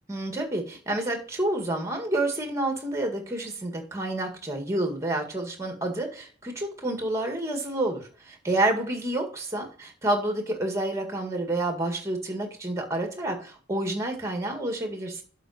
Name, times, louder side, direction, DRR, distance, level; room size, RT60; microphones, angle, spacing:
voice 1, 0.1-15.2, right 1 dB, 15° right, 3 dB, 1.9 m, -29 dB
7.8 x 5.4 x 4.9 m, 0.41 s
head